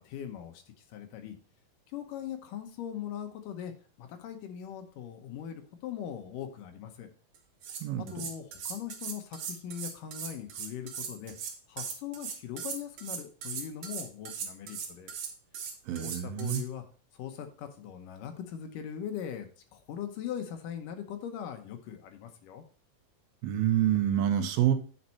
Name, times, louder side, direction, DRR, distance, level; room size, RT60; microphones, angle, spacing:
voice 1, 0.0-1.4 1.9-3.7 4.0-7.1 8.0-11.4 11.7-15.1 16.0-16.8 17.2-19.5 19.7-22.6, left 9 dB, 75° left, 6 dB, 2.4 m, -40 dB
sound 1, 7.3-7.4 7.6-16.6, right 7 dB, 60° right, 2.3 m, -39 dB
voice 2, 15.9-16.6 23.4-24.7, right 11 dB, 85° right, 6 dB, 2.8 m, -27 dB
9.0 x 5.4 x 4.2 m, 0.40 s
omnidirectional pair, 4.2 m